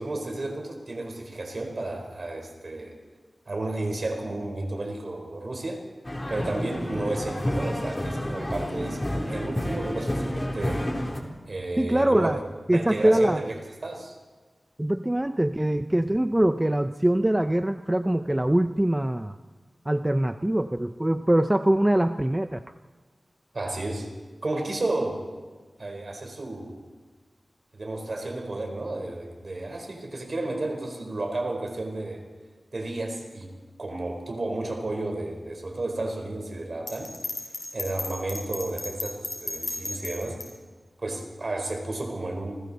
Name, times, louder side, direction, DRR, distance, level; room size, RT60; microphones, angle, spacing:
voice 1, 0.0-3.0 3.5-5.9 6.3-10.9 11.5-12.5 12.7-13.5 13.8-14.2 23.5-24.1 24.4-25.3 25.8-26.8 27.7-32.3 32.7-37.2 37.7-40.4 41.0-42.7, right 2 dB, 55° right, 3 dB, 4.5 m, -32 dB
sound 1, 6.0-11.2, left 1 dB, 20° left, 3.5 m, -30 dB
voice 2, 11.8-12.4 12.7-13.4 14.8-19.3 19.9-22.6, right 1 dB, 15° right, 8 dB, 0.7 m, -23 dB
Bell, 36.9-40.5, left 2 dB, 40° left, 6.6 m, -34 dB
29.5 x 21.0 x 4.3 m, 1.4 s
wide cardioid pair, 90°, 0 cm